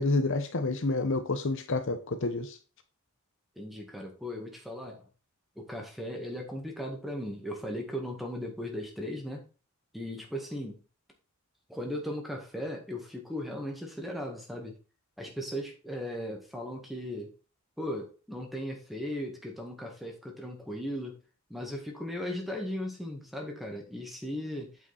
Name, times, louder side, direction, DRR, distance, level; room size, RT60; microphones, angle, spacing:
voice 1, 0.0-2.6, left 2 dB, 60° left, 0.8 m, -29 dB
voice 2, 3.6-5.1 5.6-9.5 9.9-10.8 11.7-14.8 15.2-17.3 17.8-21.2 21.5-24.7, equal, ahead, 1.8 m, -37 dB
8.3 x 5.2 x 4.2 m
head